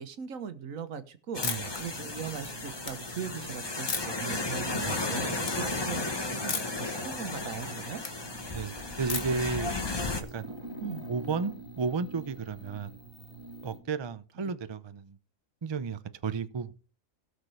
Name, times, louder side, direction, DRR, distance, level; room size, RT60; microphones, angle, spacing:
voice 1, 0.0-8.0 10.8-11.0 14.4-14.5, right 7 dB, 80° right, 1.4 m, -40 dB
sound 1, 1.3-10.2, left 3 dB, 20° left, 0.9 m, -34 dB
sound 2, 1.4-1.8 2.3-2.9 3.9-4.3 4.8-5.1 5.4-5.6 6.5-6.8 7.2-8.1 9.1-9.5, left 6 dB, 85° left, 1.7 m, -35 dB
sound 3, 1.7-13.8, right 2 dB, 20° right, 1.9 m, -47 dB
voice 2, 9.0-9.7 10.3-10.5 11.1-13.0 13.6-15.2 15.6-16.7, right 5 dB, 40° right, 0.4 m, -33 dB
17.5 x 6.6 x 3.3 m
omnidirectional pair, 1.4 m